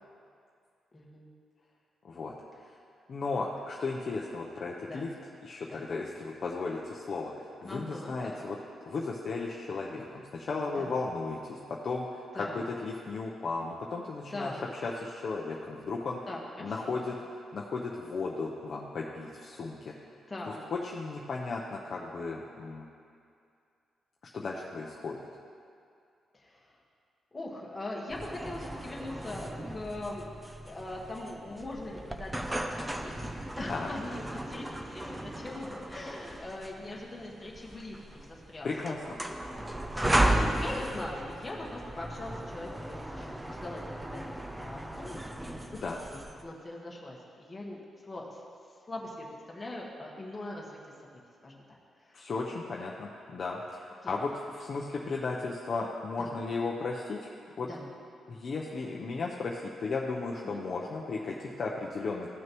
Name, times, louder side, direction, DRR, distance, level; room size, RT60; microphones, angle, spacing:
voice 1, 0.9-1.3 4.8-5.1 5.7-5.8 7.6-8.5 10.7-10.9 12.3-12.6 14.3-14.6 16.3-17.0 20.3-20.6 26.3-26.8 27.3-30.3 30.6-33.1 33.6-38.7 39.0-45.6 46.1-47.8 48.0-48.4 48.9-50.8 51.4-51.6 52.0-52.2 54.0-54.2 56.2-56.3 57.7-57.9 60.4-60.6, left 2 dB, 15° left, -4 dB, 1.4 m, -41 dB
voice 2, 3.1-5.1 5.4-8.6 8.9-14.5 14.8-16.2 16.6-17.1 17.5-20.0 20.7-22.8 24.3-25.2 33.7-33.9 38.6-39.2 45.8-46.0 52.1-57.3 57.6-57.7 58.3-62.3, left 3 dB, 45° left, -2 dB, 0.7 m, -35 dB
sound 1, 28.1-46.4, right 1 dB, 10° right, 0.5 m, -35 dB
15.0 x 6.3 x 3.1 m, 2.4 s
cardioid pair, 130°, 0 cm